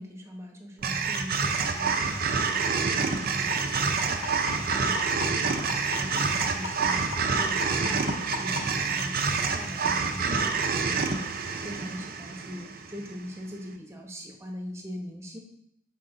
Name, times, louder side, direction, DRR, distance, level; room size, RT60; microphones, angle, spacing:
voice 1, 0.0-15.4, equal, 15° right, 1 dB, 1.0 m, -41 dB
sound 1, 0.8-13.1, right 5 dB, 50° right, 0.6 m, -27 dB
sound 2, 3.5-8.6 9.6-9.7 10.1-10.2 10.7-10.8, left 4 dB, 85° left, 2.8 m, -33 dB
6.4 x 5.1 x 3.9 m, 0.77 s
head